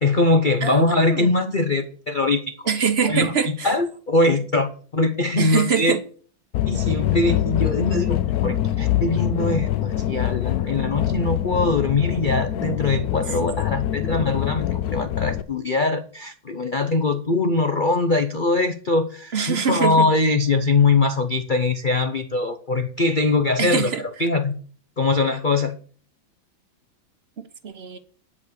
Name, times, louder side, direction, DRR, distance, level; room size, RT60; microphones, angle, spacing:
voice 1, 0.0-2.7 3.0-3.3 3.6-5.9 6.7-23.9 24.2-24.6 25.0-25.7, left 3 dB, 90° left, 0.4 m, -22 dB
voice 2, 0.6-1.3 2.7-3.7 5.4-6.0 13.0-13.6 19.3-20.1 23.6-24.0 27.4-28.0, right 6 dB, 45° right, 0.8 m, -24 dB
sound 1, 6.5-15.4, left 12 dB, 65° left, 0.9 m, -24 dB
10.5 x 5.6 x 6.7 m
omnidirectional pair, 2.2 m